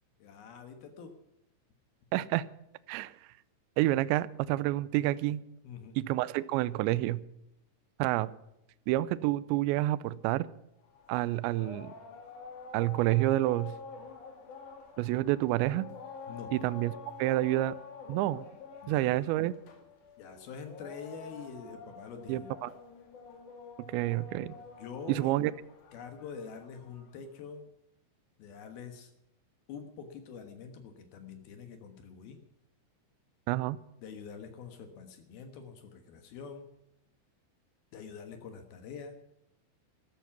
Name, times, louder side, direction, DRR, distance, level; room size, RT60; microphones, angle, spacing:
voice 1, 0.2-1.1 5.6-6.0 16.3-16.5 18.8-19.3 20.2-22.5 24.8-25.4 25.9-27.7 28.4-29.1 29.7-32.4 34.0-36.7 37.9-39.2, left 6 dB, 65° left, 7 dB, 2.6 m, -45 dB
voice 2, 2.1-2.4 2.9-3.1 3.8-5.4 6.0-7.2 8.0-8.3 8.9-10.5 11.1-11.9 12.7-13.7 15.0-15.9 16.5-16.9 17.2-17.7 18.1-18.4 18.9-19.5 22.3-22.7 23.9-24.6 25.1-25.5 33.5-33.8, right 16 dB, 85° right, 16 dB, 2.6 m, -28 dB
sound 1, 10.8-27.2, left 5 dB, 50° left, 2.9 m, -48 dB
13.5 x 13.5 x 6.0 m, 0.84 s
omnidirectional pair, 5.8 m